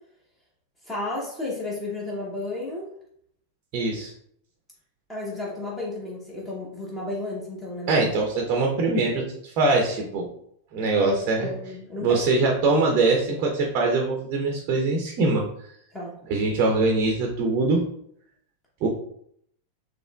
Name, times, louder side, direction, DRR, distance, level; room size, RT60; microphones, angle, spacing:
voice 1, 0.8-2.9 5.1-8.1 10.9-12.2 15.9-16.1, left 2 dB, 15° left, -5 dB, 0.9 m, -32 dB
voice 2, 3.7-4.1 7.9-10.3 10.7-11.5 12.0-15.5 16.3-17.9 18.8-18.9, right 3 dB, 40° right, 1 dB, 0.6 m, -23 dB
4.2 x 3.0 x 2.3 m, 0.68 s
figure-of-eight pair, 90°, 0 cm